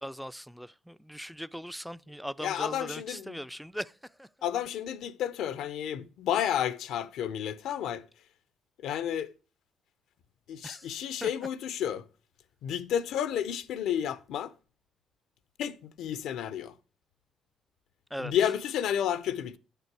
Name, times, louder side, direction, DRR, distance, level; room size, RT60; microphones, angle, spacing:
voice 1, 0.0-4.3 10.6-10.9 11.2-11.5 18.1-18.3, equal, ahead, 0.4 m, -40 dB
voice 2, 2.4-3.4 4.4-8.0 8.8-9.3 10.5-12.1 12.6-14.5 15.6-16.7 18.2-19.6, left 9 dB, 80° left, 0.5 m, -31 dB
9.2 x 6.8 x 4.6 m
cardioid pair, 80°, 0 cm